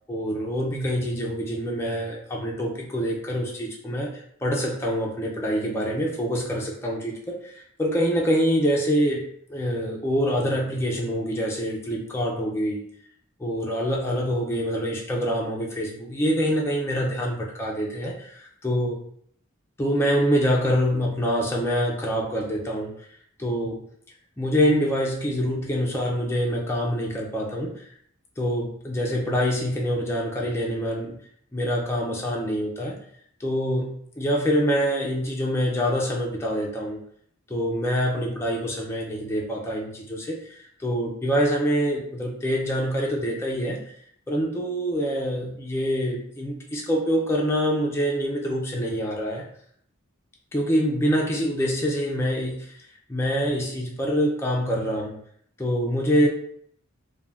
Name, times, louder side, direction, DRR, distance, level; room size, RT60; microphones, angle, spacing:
voice 1, 0.1-12.8 13.4-19.0 19.8-22.9 23.4-23.9 24.4-27.8 28.4-31.2 31.5-33.0 33.4-37.0 37.5-43.8 44.3-49.5 50.5-52.8 53.1-55.2 55.6-56.3, equal, 10° left, -2 dB, 0.4 m, -25 dB
2.4 x 2.2 x 3.3 m, 0.64 s
head